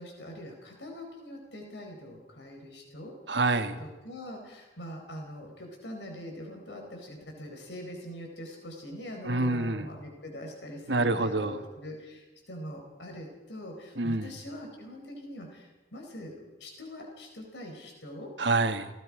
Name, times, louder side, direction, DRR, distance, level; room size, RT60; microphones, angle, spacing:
voice 1, 0.0-3.1 3.8-18.3, equal, 80° left, 2 dB, 4.8 m, -43 dB
voice 2, 3.3-3.8 9.2-9.9 10.9-11.6 14.0-14.3 18.4-18.9, right 2 dB, 80° right, 8 dB, 1.5 m, -27 dB
28.5 x 19.0 x 5.0 m, 1.1 s
head